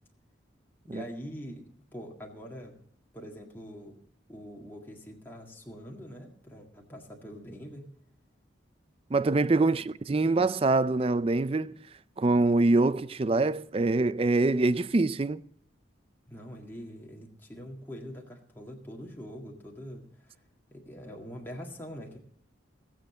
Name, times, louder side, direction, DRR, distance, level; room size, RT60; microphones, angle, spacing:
voice 1, 0.8-1.6 1.9-2.7 3.1-3.9 4.3-7.9 9.6-9.9 16.3-20.4 20.7-22.2, equal, 10° left, 1.8 m, -44 dB
voice 2, 9.1-11.8 12.2-15.4, right 3 dB, 30° right, 0.4 m, -24 dB
18.0 x 7.7 x 6.9 m
head